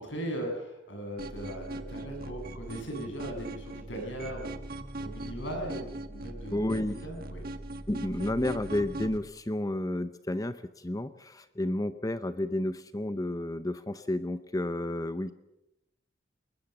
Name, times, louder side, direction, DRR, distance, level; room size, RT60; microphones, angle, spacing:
voice 1, 0.0-4.6 5.0-7.4, right 1 dB, 70° left, 3 dB, 7.4 m, -38 dB
sound 1, 1.2-9.2, right 1 dB, 50° right, 1.6 m, -40 dB
voice 2, 6.5-7.0 7.9-15.3, left 1 dB, 20° left, 12 dB, 0.7 m, -31 dB
21.5 x 20.0 x 7.2 m, 0.90 s
head